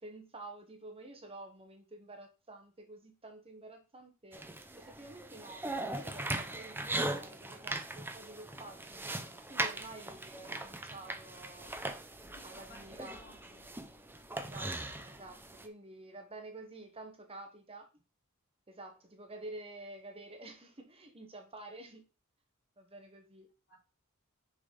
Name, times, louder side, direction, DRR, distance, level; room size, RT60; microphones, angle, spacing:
voice 1, 0.0-4.4 4.7-9.2 9.5-11.8 12.4-13.2 14.4-17.9 18.7-22.0 22.8-23.5, right 2 dB, 25° right, 1.1 m, -50 dB
sound 1, 4.3-15.7, right 2 dB, 10° right, 0.7 m, -40 dB
voice 2, 12.3-13.7 23.7-23.8, left 2 dB, 55° left, 3.1 m, -58 dB
6.4 x 4.0 x 5.3 m
head